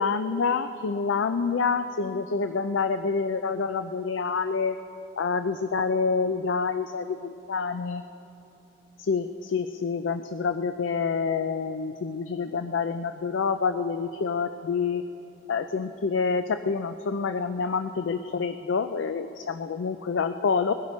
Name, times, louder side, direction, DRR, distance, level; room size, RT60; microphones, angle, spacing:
voice 1, 0.0-4.8 5.2-8.0 9.0-15.0 15.5-20.7, left 5 dB, 65° left, 10 dB, 0.4 m, -27 dB
20.5 x 9.5 x 5.3 m, 2.9 s
head